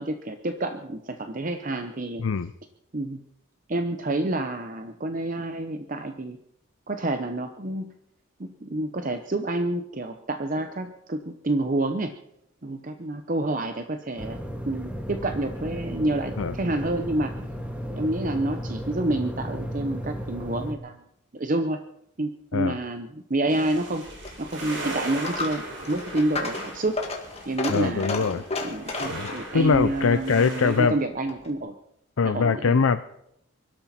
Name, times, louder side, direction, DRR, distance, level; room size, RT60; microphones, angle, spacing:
voice 1, 0.0-2.2 2.9-3.2 3.7-6.4 6.9-7.9 8.4-12.1 12.6-14.4 14.7-17.3 17.9-20.9 21.3-21.8 22.2-24.0 24.4-27.0 27.5-31.7 32.2-32.8, right 2 dB, 40° right, 7 dB, 0.8 m, -28 dB
sound 1, 14.2-20.7, equal, 5° right, 1.6 m, -34 dB
sound 2, 23.5-30.9, right 1 dB, 65° right, 5.8 m, -38 dB
Coin (dropping), 24.1-31.6, left 3 dB, 30° left, 2.2 m, -34 dB
voice 2, 27.7-28.4 29.1-31.0 32.2-33.0, left 5 dB, 80° left, 11 dB, 0.5 m, -22 dB
23.5 x 12.5 x 4.3 m, 0.76 s
head